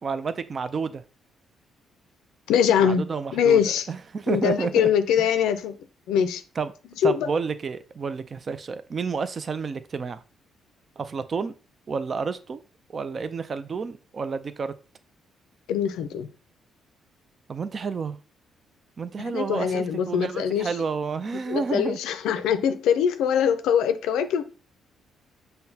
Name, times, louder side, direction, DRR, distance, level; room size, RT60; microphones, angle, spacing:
voice 1, 0.0-1.0 2.8-3.6 3.9-4.9 5.2-5.3 6.6-6.7 7.0-10.2 11.0-11.5 11.9-12.6 12.9-14.7 17.5-18.2 19.0-22.0, right 5 dB, 40° right, 0.4 m, -30 dB
voice 2, 2.5-3.9 4.3-5.7 6.1-6.4 7.0-7.3 15.7-16.3 19.2-20.7 21.5-24.4, left 8 dB, 85° left, 0.4 m, -23 dB
5.6 x 2.2 x 2.8 m
cardioid pair, 90°, 0 cm